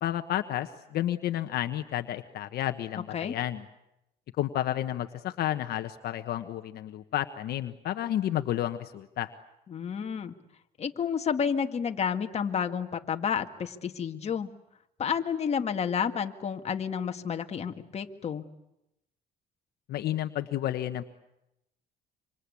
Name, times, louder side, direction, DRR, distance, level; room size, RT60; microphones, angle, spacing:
voice 1, 0.0-3.6 4.4-9.3 19.9-21.0, left 12 dB, 70° left, 8 dB, 1.3 m, -31 dB
voice 2, 9.7-10.3 10.8-14.5 15.0-18.5, left 7 dB, 40° left, 5 dB, 1.9 m, -30 dB
26.5 x 26.0 x 8.5 m, 0.86 s
cardioid pair, 110°, 17 cm